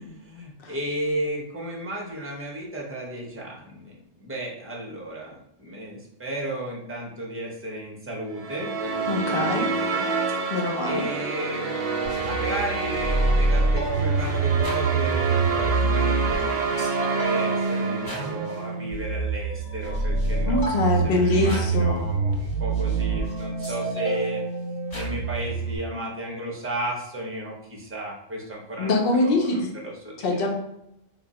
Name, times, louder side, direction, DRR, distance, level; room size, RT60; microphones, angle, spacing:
voice 1, 0.0-10.1 10.8-20.7 21.0-24.4 24.9-30.5, right 1 dB, 15° right, -2 dB, 0.6 m, -34 dB
sound 1, 8.3-18.7, right 5 dB, 70° right, 0.3 m, -28 dB
voice 2, 9.1-9.7 10.5-11.0 20.5-22.1 28.8-29.7 30.2-30.6, left 2 dB, 55° left, 1 dB, 0.8 m, -24 dB
sound 2, 12.1-25.8, right 3 dB, 80° left, 1.8 m, -26 dB
2.9 x 2.4 x 4.0 m, 0.81 s
omnidirectional pair, 1.2 m